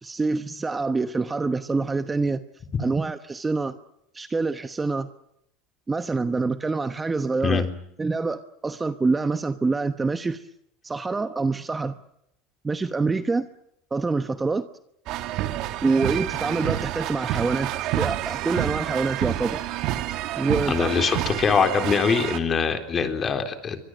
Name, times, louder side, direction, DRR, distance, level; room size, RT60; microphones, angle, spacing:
voice 1, 0.0-2.4 2.8-3.7 4.1-5.1 5.9-7.7 8.0-10.4 10.8-12.0 12.6-13.5 13.9-14.7 15.8-19.6 20.4-20.9, right 3 dB, 15° right, 10 dB, 1.0 m, -26 dB
sound 1, 15.1-22.4, right 13 dB, 50° right, 2.3 m, -28 dB
voice 2, 20.7-23.8, left 6 dB, 25° left, 7 dB, 3.8 m, -23 dB
27.5 x 24.5 x 6.4 m, 0.76 s
supercardioid pair, 145°, 0 cm